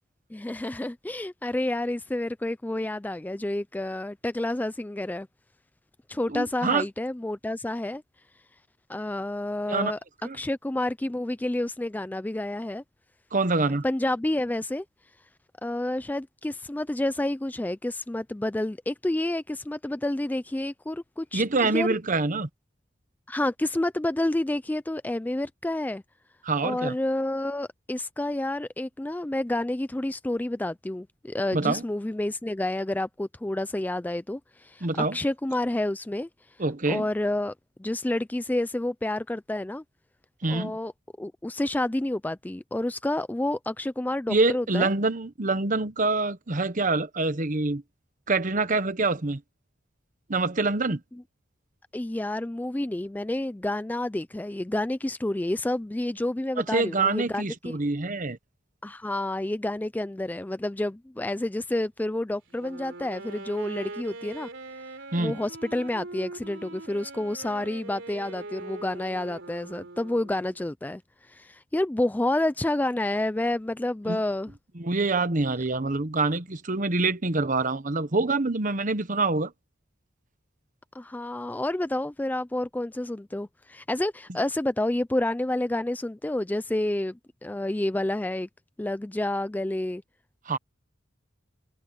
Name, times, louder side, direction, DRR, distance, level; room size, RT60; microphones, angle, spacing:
voice 1, 0.3-5.3 6.1-8.0 8.9-10.0 10.3-12.8 13.8-14.8 15.6-21.9 23.3-26.0 26.6-36.3 36.9-37.5 37.8-39.8 40.5-40.9 41.2-44.9 51.9-57.7 58.8-64.5 65.2-71.0 71.3-74.5 80.9-88.5 88.8-90.0, left 1 dB, 10° left, 0.3 m, -29 dB
voice 2, 6.3-6.8 9.7-9.9 10.2-10.4 13.3-13.8 21.3-22.5 26.4-26.9 31.5-31.8 34.8-35.2 36.6-37.0 40.4-40.8 44.3-47.8 48.3-49.4 50.3-51.0 56.6-58.4 65.1-65.4 74.1-74.2 74.7-79.5 90.5-90.6, right 3 dB, 40° right, 1.1 m, -26 dB
Wind instrument woodwind instrument, 62.5-70.6, right 2 dB, 70° right, 3.9 m, -42 dB
head